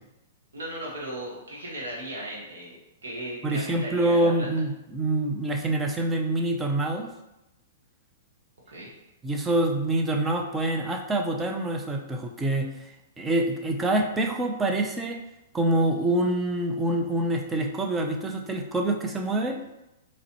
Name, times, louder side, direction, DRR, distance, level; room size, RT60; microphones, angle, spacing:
voice 1, 0.5-2.7 3.0-4.5 8.7-8.9, right 1 dB, 85° right, -5 dB, 1.3 m, -36 dB
voice 2, 3.4-7.1 9.2-12.7 13.2-15.2 15.5-19.6, right 1 dB, 15° right, 2 dB, 0.5 m, -26 dB
4.0 x 3.1 x 2.9 m, 0.89 s
hypercardioid pair, 130°, 0 cm